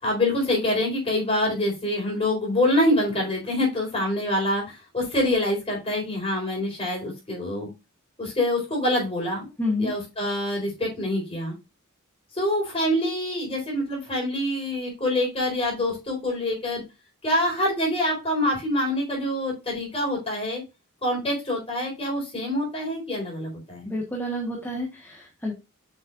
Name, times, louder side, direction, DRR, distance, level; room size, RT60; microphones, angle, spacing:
voice 1, 0.0-7.7 8.2-9.5 9.8-11.5 12.3-16.8 17.2-20.6 21.0-23.9, left 1 dB, 25° left, -1 dB, 4.5 m, -25 dB
voice 2, 9.6-9.9 23.8-25.5, left 1 dB, 10° left, -2 dB, 1.4 m, -29 dB
7.4 x 6.5 x 2.5 m, 0.26 s
head